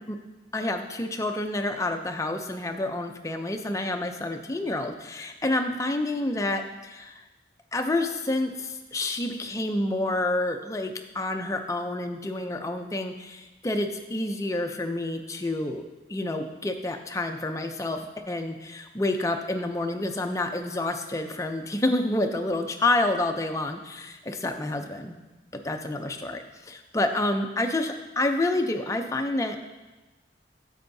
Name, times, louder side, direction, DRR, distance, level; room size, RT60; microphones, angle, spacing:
voice 1, 0.5-7.2 7.7-25.2 25.5-29.6, left 2 dB, 15° left, 5 dB, 0.4 m, -28 dB
9.9 x 7.8 x 2.7 m, 1.1 s
head